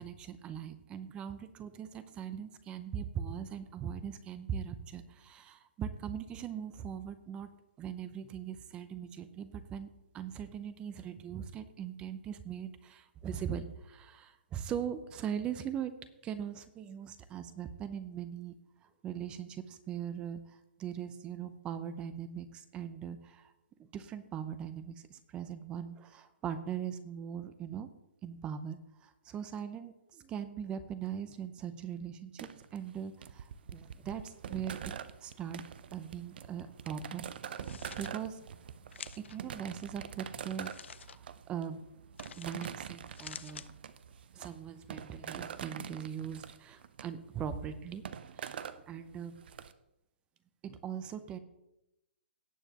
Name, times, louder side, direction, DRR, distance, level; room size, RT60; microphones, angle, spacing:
voice 1, 0.0-7.5 7.8-15.9 16.2-20.4 20.8-23.5 23.8-27.9 28.2-34.9 35.2-35.6 35.9-38.4 39.2-40.7 41.1-41.2 41.5-41.8 42.4-43.6 44.3-48.0 48.3-49.4 50.6-51.4, right 8 dB, 15° right, 13 dB, 0.6 m, -40 dB
sound 1, 32.4-49.7, right 8 dB, 60° right, 0.6 m, -45 dB
sound 2, 37.4-38.1 38.9-39.4 40.5-41.2 42.2-42.7 43.0-43.7, left 6 dB, 85° left, 0.6 m, -48 dB
18.0 x 7.1 x 2.9 m, 0.90 s
hypercardioid pair, 155°, 6 cm